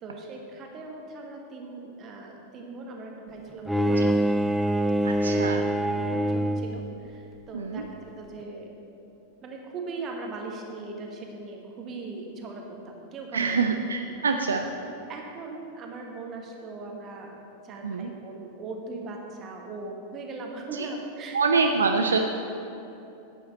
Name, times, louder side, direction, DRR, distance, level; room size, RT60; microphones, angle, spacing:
voice 1, 0.0-4.2 5.2-5.5 6.1-8.7 9.4-13.6 14.1-14.2 15.1-17.4 17.6-21.4, right 3 dB, 30° right, 1 dB, 1.4 m, -39 dB
Bowed string instrument, 3.7-6.9, right 1 dB, 5° right, 0.4 m, -24 dB
voice 2, 5.0-5.7 7.5-7.8 13.3-14.7 17.8-18.1 20.7-20.9 21.3-22.2, right 4 dB, 70° right, 5 dB, 0.4 m, -25 dB
10.5 x 8.3 x 4.1 m, 2.8 s
figure-of-eight pair, 90°, 0 cm